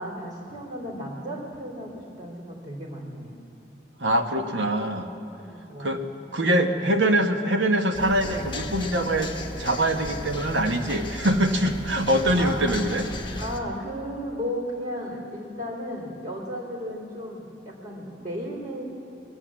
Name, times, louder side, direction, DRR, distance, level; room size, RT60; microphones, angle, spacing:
voice 1, 0.0-3.3 5.4-6.0 12.3-12.7 13.4-18.8, equal, 45° right, -3 dB, 3.2 m, -34 dB
voice 2, 4.0-5.1 5.8-6.0 6.3-13.4, right 1 dB, 80° right, 5 dB, 1.1 m, -24 dB
sound 1, 7.9-13.6, left 1 dB, 25° left, 0.9 m, -35 dB
22.5 x 8.1 x 7.4 m, 2.9 s
head